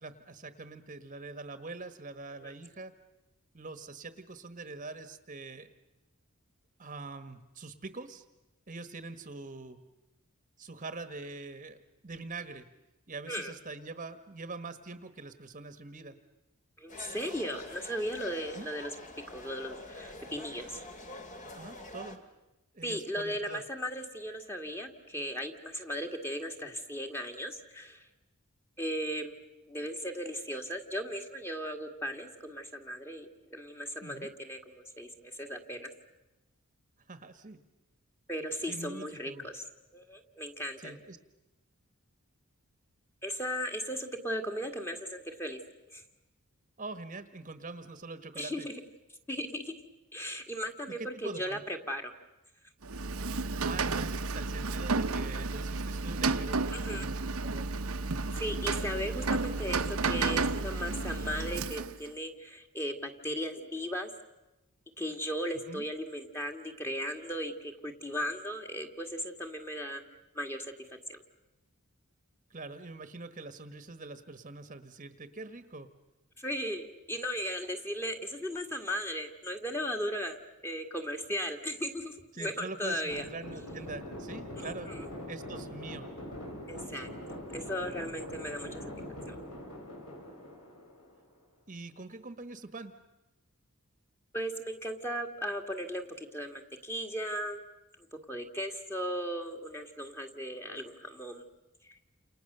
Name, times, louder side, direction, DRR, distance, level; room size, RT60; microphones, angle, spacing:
voice 1, 0.0-2.9 3.5-5.7 6.8-8.2 8.7-9.8 10.6-11.8 12.0-12.7 13.1-16.1 18.5-18.7 21.5-22.2 22.7-23.6 34.0-34.3 37.1-37.6 38.7-39.5 40.8-41.2 46.8-48.7 51.0-51.6 53.5-57.7 65.7-65.9 72.5-75.9 82.3-84.9 85.3-86.1 91.7-92.9, right 3 dB, 35° right, 10 dB, 1.3 m, -44 dB
voice 2, 16.8-18.9 19.3-20.8 22.8-28.1 28.8-29.3 29.7-35.9 38.3-39.6 39.9-41.0 43.2-45.6 45.9-46.0 48.4-48.7 49.3-49.7 50.1-52.1 56.7-57.1 58.3-64.1 65.0-70.0 70.3-70.7 71.1-71.2 76.4-83.3 84.6-85.0 86.7-87.1 87.5-88.9 89.3-89.4 94.3-97.6 98.3-101.4, equal, 10° left, 5 dB, 2.0 m, -37 dB
sound 1, 16.9-22.2, left 2 dB, 35° left, 2.4 m, -46 dB
Rain, 52.8-62.1, right 3 dB, 75° right, 1.1 m, -32 dB
sound 2, 83.1-91.4, left 1 dB, 75° left, 6.7 m, -43 dB
29.5 x 28.0 x 6.8 m, 1.0 s
head